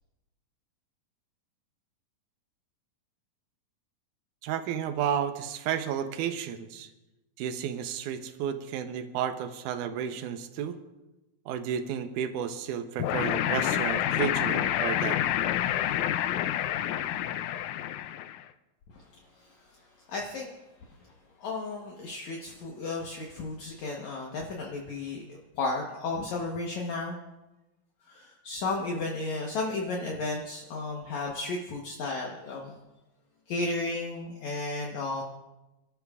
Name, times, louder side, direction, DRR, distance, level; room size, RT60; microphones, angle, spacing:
voice 1, 4.4-6.9 7.4-10.8 11.5-15.2, right 9 dB, 75° right, 9 dB, 2.1 m, -32 dB
sound 1, 13.0-18.4, left 12 dB, 85° left, 1.7 m, -28 dB
voice 2, 19.4-19.7 20.1-20.5 21.0-21.1 21.4-27.1 28.1-32.7 33.5-35.2, left 3 dB, 65° left, -1 dB, 2.2 m, -33 dB
29.5 x 12.5 x 2.4 m, 1.0 s
omnidirectional pair, 4.1 m